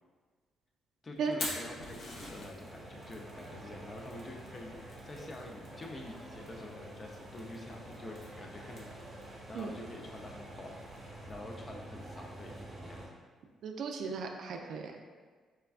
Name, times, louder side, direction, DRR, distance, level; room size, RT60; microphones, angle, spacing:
voice 1, 1.0-10.8 11.0-13.0, left 2 dB, 35° left, 1 dB, 0.5 m, -47 dB
Fire, 1.2-12.6, left 1 dB, 70° left, 0.8 m, -48 dB
sound 1, 2.6-13.1, right 1 dB, 25° right, 1.0 m, -48 dB
voice 2, 13.6-15.0, right 5 dB, 70° right, 3 dB, 0.3 m, -36 dB
4.3 x 2.3 x 2.3 m, 1.5 s
cardioid pair, 90°, 0 cm